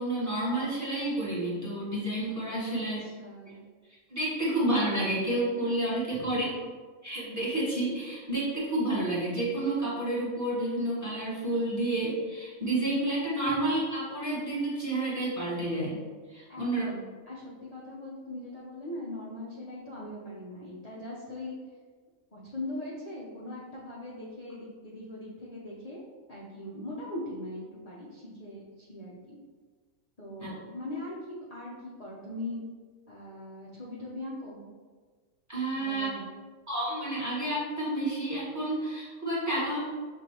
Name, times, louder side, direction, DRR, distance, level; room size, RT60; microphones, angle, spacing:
voice 1, 0.0-3.0 4.1-6.5 7.0-16.0 16.3-16.8 30.4-30.5 35.5-36.1 36.7-39.8, right 1 dB, 15° right, -7 dB, 1.2 m, -30 dB
voice 2, 2.7-3.6 6.1-6.6 13.5-13.6 16.5-17.0 17.3-21.5 22.3-26.0 26.3-29.4 30.2-32.6 33.1-34.6 35.7-36.3, left 1 dB, 35° left, -7 dB, 0.7 m, -40 dB
6.5 x 2.6 x 2.9 m, 1.5 s
omnidirectional pair, 1.5 m